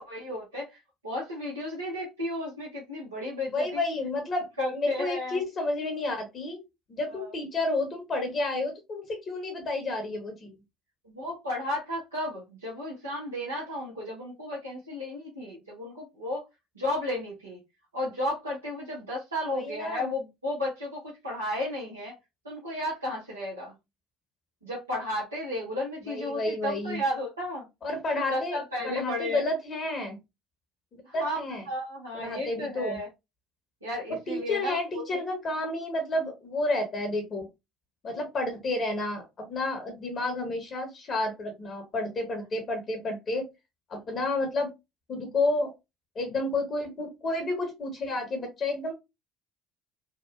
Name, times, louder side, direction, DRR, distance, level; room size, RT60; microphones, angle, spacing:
voice 1, 0.0-3.8 4.6-5.4 7.1-7.3 11.0-16.5 16.7-17.6 17.9-22.2 22.4-23.7 24.6-27.7 28.1-29.4 31.0-31.4 31.7-33.1 33.8-35.2, left 1 dB, 85° right, -6 dB, 0.8 m, -33 dB
voice 2, 3.5-6.6 6.9-10.5 19.5-20.1 26.1-27.0 27.8-28.6 28.8-30.2 30.9-31.6 32.1-33.0 34.3-37.5 38.0-43.5 43.9-44.7 45.1-45.7 46.1-48.9, left 2 dB, 40° left, 5 dB, 0.7 m, -30 dB
2.8 x 2.1 x 2.4 m, 0.23 s
figure-of-eight pair, 60°, 0 cm